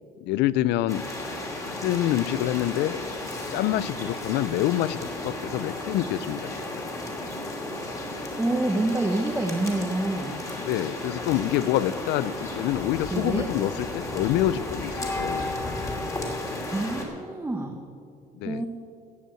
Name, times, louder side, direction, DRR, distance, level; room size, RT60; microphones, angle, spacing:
voice 1, 0.2-1.0 1.6-3.0 3.5-6.9 10.6-15.5 18.4-18.6, left 13 dB, 90° left, 17 dB, 0.5 m, -27 dB
sound 1, 0.9-17.0, left 2 dB, 20° left, 2.7 m, -33 dB
voice 2, 8.3-10.5 13.1-13.5 16.7-17.8 18.4-18.7, right 2 dB, 10° right, 1 dB, 1.1 m, -27 dB
16.0 x 5.6 x 8.9 m, 2.3 s
cardioid pair, 110°, 17 cm